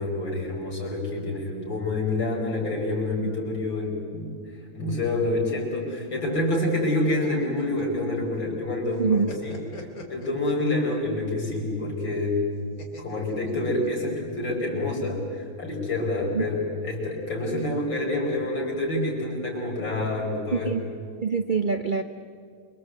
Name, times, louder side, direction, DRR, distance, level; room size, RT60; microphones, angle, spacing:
voice 1, 0.0-4.4 4.7-9.6 10.1-12.4 13.0-20.7, left 2 dB, 70° left, -1 dB, 5.9 m, -27 dB
sound 1, 6.9-8.6 8.9-11.1 12.8-14.2, left 2 dB, 45° left, 3.1 m, -42 dB
voice 2, 9.0-9.3 16.3-16.4 20.5-20.8 21.2-22.0, right 5 dB, 65° right, 7 dB, 0.4 m, -24 dB
27.5 x 23.5 x 7.9 m, 2.1 s
omnidirectional pair, 2.2 m